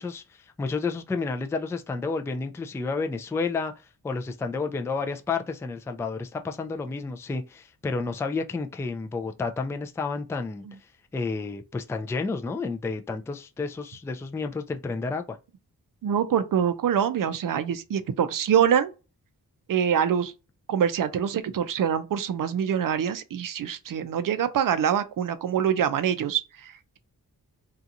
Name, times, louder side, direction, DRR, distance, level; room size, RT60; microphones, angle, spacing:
voice 1, 0.0-3.7 4.0-10.6 11.1-15.4, left 4 dB, 5° left, 0.3 m, -31 dB
voice 2, 16.0-18.9 19.7-20.3 20.7-27.0, right 8 dB, 55° right, 0.5 m, -25 dB
2.7 x 2.4 x 2.5 m
cardioid pair, 45°, 40 cm